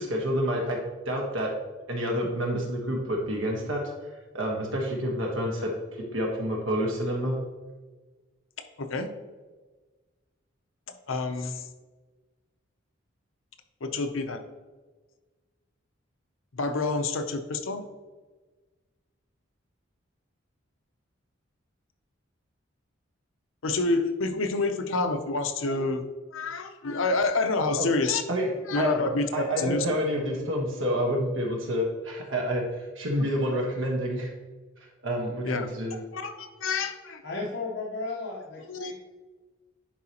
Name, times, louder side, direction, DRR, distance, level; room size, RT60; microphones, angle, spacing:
voice 1, 0.0-1.5 1.9-3.8 4.3-7.4 27.8-27.9 28.3-28.5 28.7-28.9 29.3-34.3 35.0-36.0, equal, 85° right, 0 dB, 1.3 m, -28 dB
voice 2, 11.1-11.6 13.8-14.4 16.5-17.9 23.6-28.2 28.7-29.9 32.4-32.5 35.4-35.7 36.1-37.2 38.7-38.9, left 3 dB, 85° left, 8 dB, 0.7 m, -28 dB
voice 3, 37.2-38.9, left 3 dB, 65° left, -4 dB, 1.1 m, -34 dB
10.0 x 4.8 x 2.9 m, 1.3 s
head